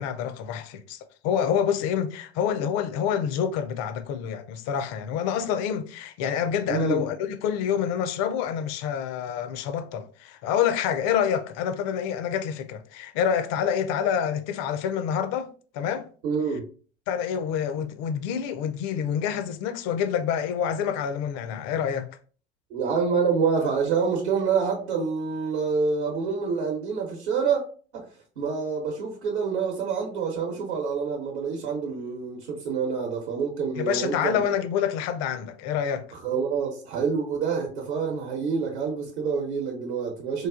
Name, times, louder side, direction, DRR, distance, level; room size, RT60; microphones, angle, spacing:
voice 1, 0.0-16.1 17.1-22.2 33.8-36.1, left 8 dB, 50° left, 0.5 m, -27 dB
voice 2, 6.7-7.0 16.2-16.6 22.7-27.6 27.9-28.1 28.4-34.4 36.2-40.5, right 5 dB, 75° right, 0.9 m, -27 dB
4.7 x 2.3 x 2.4 m
figure-of-eight pair, 70°, 33 cm